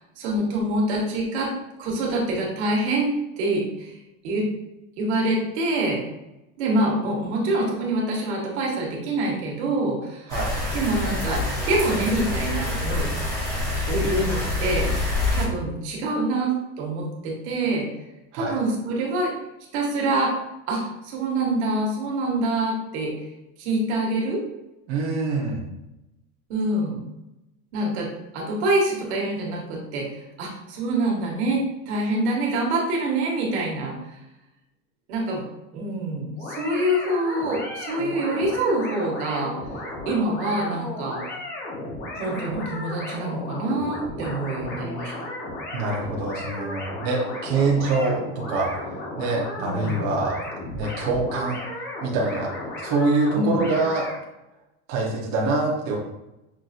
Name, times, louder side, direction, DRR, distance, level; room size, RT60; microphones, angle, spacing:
voice 1, 0.0-1.5 1.8-4.5 5.0-6.0 6.6-10.3 10.7-13.1 13.9-14.9 15.3-17.9 18.3-19.3 19.7-20.3 20.7-23.1 23.6-24.4 26.5-27.0 27.7-34.2 35.1-35.4 35.7-39.5 40.0-41.2 42.2-45.3 49.6-50.0 53.3-53.6, right 2 dB, 85° right, -2 dB, 1.3 m, -25 dB
sound 1, 10.3-15.4, left 2 dB, 10° left, 1.0 m, -26 dB
voice 2, 24.9-25.6 45.7-50.4 50.7-51.6 52.0-52.5 52.8-54.1 54.9-56.0, right 3 dB, 45° right, -2 dB, 0.8 m, -25 dB
sound 2, 36.4-54.2, left 1 dB, 30° left, 0.7 m, -34 dB
5.9 x 2.6 x 2.4 m, 0.93 s
cardioid pair, 165°, 32 cm